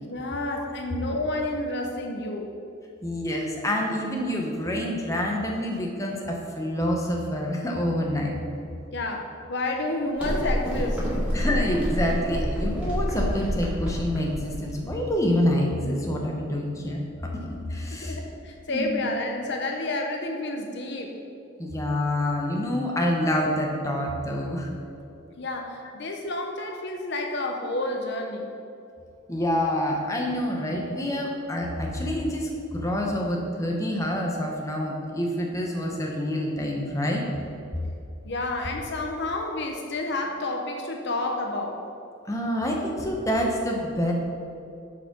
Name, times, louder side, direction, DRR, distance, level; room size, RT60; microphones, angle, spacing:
voice 1, 0.0-2.5 8.9-11.4 18.0-21.1 25.4-28.5 38.2-41.8, left 2 dB, 60° left, 2 dB, 0.8 m, -30 dB
voice 2, 3.0-8.3 11.3-17.3 17.7-18.2 18.7-19.0 21.6-24.7 29.3-37.2 42.3-44.1, left 1 dB, 15° left, -1 dB, 1.0 m, -27 dB
sound 1, 10.2-15.2, equal, 5° right, 2.2 m, -28 dB
8.4 x 5.0 x 6.0 m, 2.6 s
head